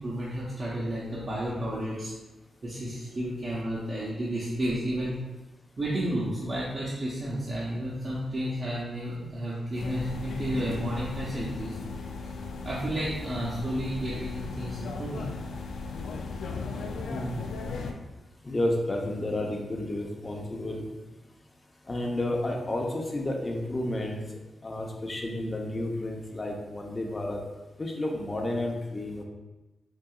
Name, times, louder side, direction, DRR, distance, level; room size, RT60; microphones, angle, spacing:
voice 1, 0.0-2.1 2.6-5.2 5.8-11.7 12.6-15.3 15.7-15.8, right 1 dB, 50° right, -8 dB, 0.9 m, -32 dB
sound 1, 9.7-17.9, left 4 dB, 80° left, 0.3 m, -36 dB
voice 2, 18.4-20.9 21.9-24.2 24.6-27.4 27.8-29.2, left 1 dB, 35° left, 0 dB, 0.7 m, -31 dB
4.7 x 2.7 x 2.3 m, 1.1 s
supercardioid pair, 45°, 0 cm